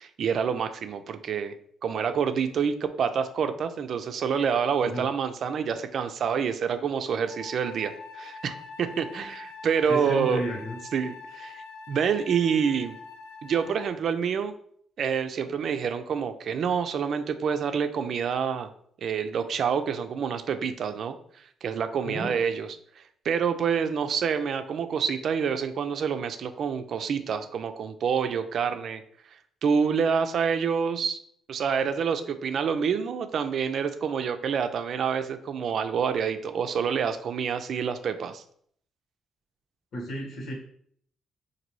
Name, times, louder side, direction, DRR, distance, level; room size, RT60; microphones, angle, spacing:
voice 1, 0.0-1.6 1.8-10.4 10.9-12.9 13.4-14.5 15.0-18.7 19.0-21.2 21.6-22.7 23.2-29.0 29.6-31.2 31.5-38.4, right 6 dB, 60° right, 9 dB, 0.4 m, -27 dB
Wind instrument woodwind instrument, 7.3-14.1, left 4 dB, 90° left, 0.7 m, -44 dB
voice 2, 9.9-10.8 22.0-22.4 39.9-40.5, right 1 dB, 70° left, -2 dB, 1.4 m, -32 dB
3.9 x 2.6 x 3.0 m, 0.63 s
cardioid pair, 90°, 0 cm